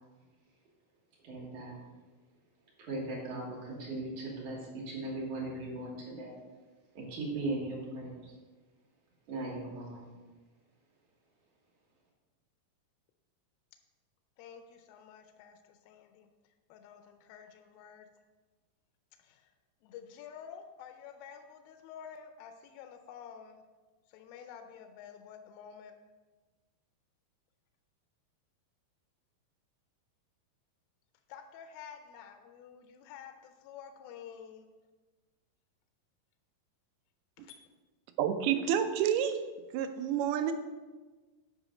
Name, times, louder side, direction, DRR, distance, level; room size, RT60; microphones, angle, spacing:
voice 1, 1.2-1.8 2.8-6.4 6.9-8.3 9.3-10.0, right 2 dB, 60° right, -2 dB, 2.7 m, -38 dB
voice 2, 14.4-16.3 16.7-18.1 19.2-19.5 19.8-23.6 24.1-25.9 31.3-34.7 37.4-37.6, left 8 dB, 80° left, 6 dB, 2.2 m, -50 dB
voice 3, 38.2-39.4 39.7-40.5, right 9 dB, 85° right, 8 dB, 2.6 m, -29 dB
8.3 x 5.0 x 4.9 m, 1.3 s
omnidirectional pair, 4.4 m